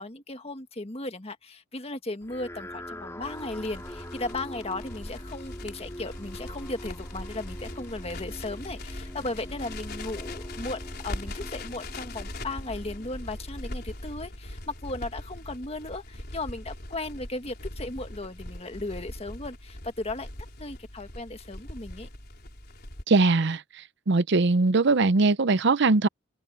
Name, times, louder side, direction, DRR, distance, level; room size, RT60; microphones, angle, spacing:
voice 1, 0.0-20.3 20.6-22.1, left 2 dB, 30° left, 1.7 m, -36 dB
sound 1, 2.2-13.7, left 1 dB, 15° left, 3.9 m, -44 dB
Crackle, 3.2-23.0, left 1 dB, 50° left, 4.6 m, -40 dB
voice 2, 23.1-23.6 24.1-26.1, right 3 dB, 60° right, 0.7 m, -21 dB
open air
head